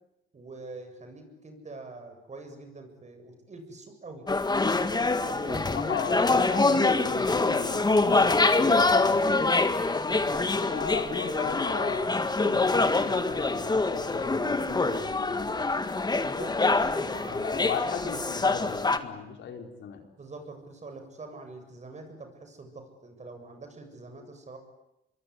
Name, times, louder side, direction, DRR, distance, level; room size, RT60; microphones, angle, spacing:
voice 1, 0.3-4.3 5.0-5.8 10.1-10.4 16.2-17.4 20.2-24.6, right 3 dB, 35° right, 6 dB, 7.7 m, -44 dB
sound 1, 4.3-19.0, left 3 dB, 20° left, 1.9 m, -25 dB
voice 2, 5.4-9.5 10.3-15.6 17.3-20.0, left 7 dB, 70° left, 4 dB, 4.6 m, -37 dB
26.5 x 23.0 x 9.7 m, 0.91 s
cardioid pair, 90°, 20 cm